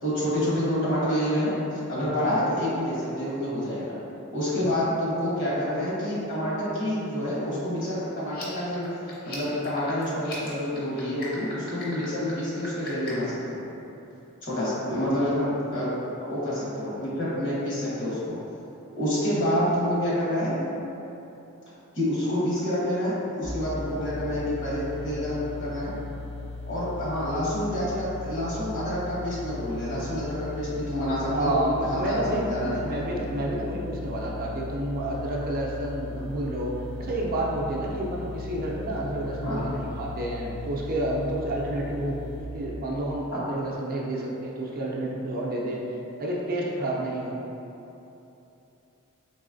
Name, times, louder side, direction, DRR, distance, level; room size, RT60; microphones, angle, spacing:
voice 1, 0.0-3.9 4.3-8.9 9.2-13.6 14.4-15.9 16.2-18.3 19.0-20.6 21.9-25.9 26.7-31.5 31.8-32.8 39.4-39.7 43.3-43.4, equal, 60° left, -8 dB, 1.2 m, -28 dB
voice 2, 2.0-2.3 4.5-4.7 15.4-15.5 31.3-36.7 37.0-45.8 46.2-47.4, right 1 dB, 45° right, -3 dB, 0.5 m, -30 dB
sound 1, 8.2-13.3, left 2 dB, 45° left, 0.8 m, -40 dB
sound 2, 23.4-42.4, left 3 dB, 85° left, 0.9 m, -38 dB
4.0 x 3.0 x 2.5 m, 2.9 s
head